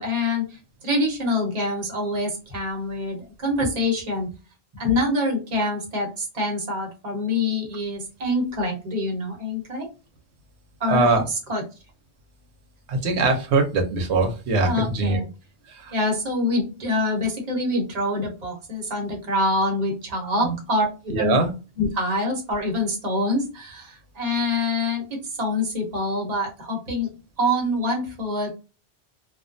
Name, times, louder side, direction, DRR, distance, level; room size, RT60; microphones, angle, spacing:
voice 1, 0.0-4.3 4.7-9.9 10.8-11.6 14.6-15.3 15.9-21.4 21.8-27.1 27.4-28.5, left 1 dB, 40° right, -1 dB, 0.9 m, -25 dB
voice 2, 10.9-11.2 12.9-15.2 15.7-15.9 20.2-20.5 21.1-21.5, right 3 dB, 85° right, 4 dB, 0.9 m, -22 dB
2.3 x 2.2 x 2.5 m, 0.31 s
omnidirectional pair, 1.1 m